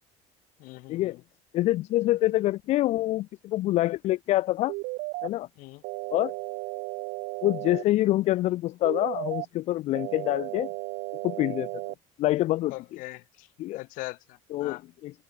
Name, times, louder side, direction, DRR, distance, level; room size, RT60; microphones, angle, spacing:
voice 1, 0.6-1.2 5.6-5.8 12.7-14.8, left 22 dB, 70° left, 2.5 m, -42 dB
voice 2, 1.5-4.7 5.2-5.5 6.1-6.3 7.4-10.7 11.2-11.7 12.2-12.7 13.6-13.8 14.5-15.1, left 16 dB, 50° left, 1.1 m, -26 dB
sound 1, 4.7-5.3 5.8-7.8 8.8-9.5 9.9-11.9, right 26 dB, 75° right, 0.6 m, -34 dB
cardioid pair, 170°, 14 cm